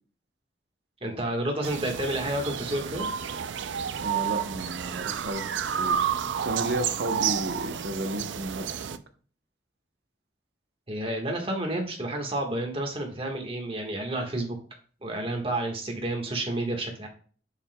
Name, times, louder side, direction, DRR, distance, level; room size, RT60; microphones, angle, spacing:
voice 1, 1.0-3.1 10.9-14.6 15.0-17.1, right 1 dB, 30° right, 2 dB, 1.4 m, -30 dB
sound 1, 1.6-9.0, right 8 dB, 90° right, 0.4 m, -30 dB
voice 2, 4.0-6.0 6.2-9.0, right 1 dB, 65° right, 7 dB, 0.8 m, -33 dB
7.1 x 6.8 x 2.2 m, 0.42 s
head